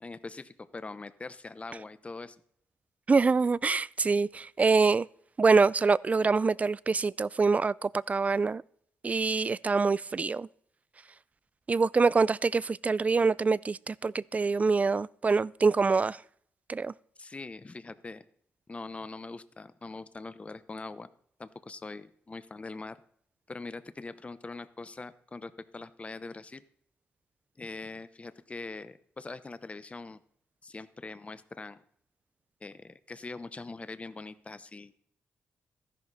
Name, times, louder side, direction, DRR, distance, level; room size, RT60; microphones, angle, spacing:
voice 1, 0.0-2.4 17.2-18.2 18.7-21.1 21.4-23.0 23.5-26.6 27.6-30.2 30.6-31.8 32.6-34.9, left 3 dB, 25° left, 0.9 m, -42 dB
voice 2, 3.1-5.1 5.4-8.6 9.0-10.5 11.7-16.2 16.7-16.9, right 4 dB, 30° right, 0.4 m, -25 dB
13.5 x 11.0 x 4.1 m
cardioid pair, 85°, 5 cm